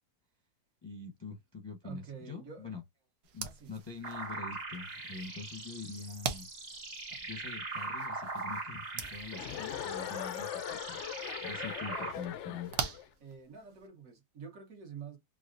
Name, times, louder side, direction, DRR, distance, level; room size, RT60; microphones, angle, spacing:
voice 1, 0.8-2.8 3.3-6.5 7.2-11.0 11.4-12.7, left 4 dB, 20° left, 0.7 m, -44 dB
voice 2, 1.8-2.7 3.4-3.7 13.2-15.2, right 6 dB, 60° right, 1.7 m, -47 dB
sound 1, 3.2-13.9, right 7 dB, 85° right, 1.4 m, -44 dB
sound 2, 4.0-12.1, right 3 dB, 30° right, 1.2 m, -41 dB
Chuckle chortle, 9.3-13.1, left 10 dB, 70° left, 0.6 m, -40 dB
4.9 x 2.5 x 2.5 m
omnidirectional pair, 1.7 m